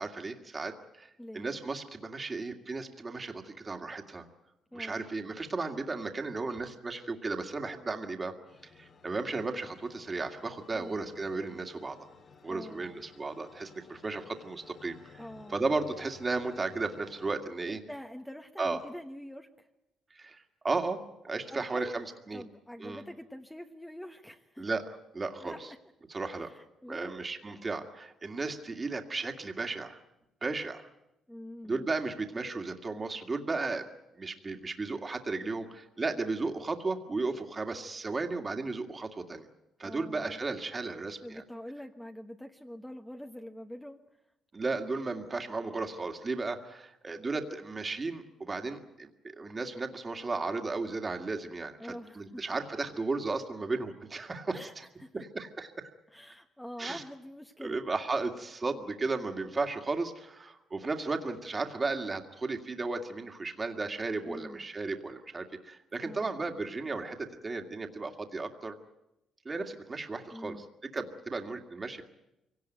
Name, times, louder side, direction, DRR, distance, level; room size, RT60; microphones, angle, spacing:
voice 1, 0.0-4.3 4.7-8.4 8.8-12.0 12.4-15.2 15.5-17.8 18.6-18.8 20.2-22.4 22.8-23.0 24.6-24.8 25.1-25.5 26.1-26.5 26.9-30.0 30.4-30.9 31.6-33.8 34.2-39.5 39.8-41.4 44.5-49.1 49.4-54.6 55.1-55.9 56.8-57.0 57.6-68.7 69.5-70.6 70.9-72.1, right 3 dB, 30° right, 5 dB, 2.2 m, -35 dB
voice 2, 4.7-5.0 10.7-11.0 12.5-13.0 15.2-15.6 17.7-19.7 21.5-21.9 22.3-24.7 25.4-25.6 26.4-27.2 31.3-31.9 39.8-40.4 41.2-44.0 51.8-52.4 54.5-55.2 56.1-57.8 64.2-64.7 66.0-66.3 70.3-70.7, equal, 5° left, 5 dB, 1.2 m, -45 dB
sound 1, 8.5-17.4, left 5 dB, 50° left, 2.4 m, -56 dB
24.5 x 18.0 x 9.2 m, 0.90 s
cardioid pair, 90°, 0 cm